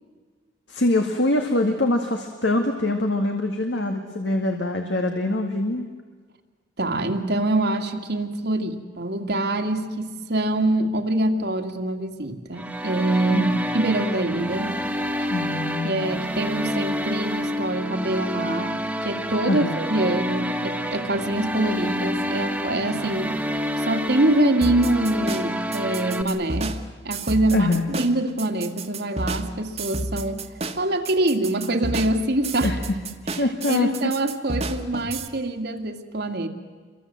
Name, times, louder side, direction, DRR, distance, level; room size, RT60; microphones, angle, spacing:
voice 1, 0.7-5.9 13.3-13.6 15.3-16.1 19.5-19.8 27.5-27.9 32.6-32.8 33.4-34.1, left 2 dB, 70° left, 4 dB, 2.1 m, -24 dB
voice 2, 6.8-14.8 15.2-15.3 15.8-23.4 23.8-30.4 30.8-32.7 33.7-36.5, right 1 dB, 60° right, 4 dB, 2.2 m, -25 dB
sound 1, 12.5-26.2, equal, 5° right, 1.6 m, -28 dB
sound 2, 24.6-35.3, right 2 dB, 35° right, 1.5 m, -31 dB
28.5 x 23.5 x 7.7 m, 1.5 s
head